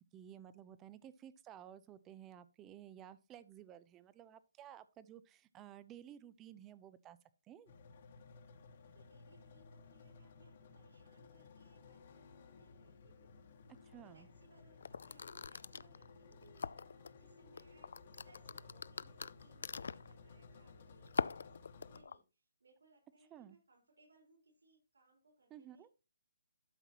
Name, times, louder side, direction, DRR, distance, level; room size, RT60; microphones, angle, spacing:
voice 1, 0.0-7.2 7.5-7.7 13.8-14.3 23.3-23.6 25.5-25.9, right 10 dB, 15° right, 16 dB, 0.5 m, -55 dB
sound 1, 7.7-22.0, left 4 dB, 40° left, 1.4 m, -58 dB
voice 2, 8.8-13.3 13.8-25.9, right 2 dB, 90° right, 0 dB, 4.5 m, -69 dB
sound 2, 14.8-17.1 17.6-20.1 21.1-22.2, left 5 dB, 65° left, 0.3 m, -41 dB
12.0 x 5.8 x 2.9 m, 0.30 s
hypercardioid pair, 165°, 0 cm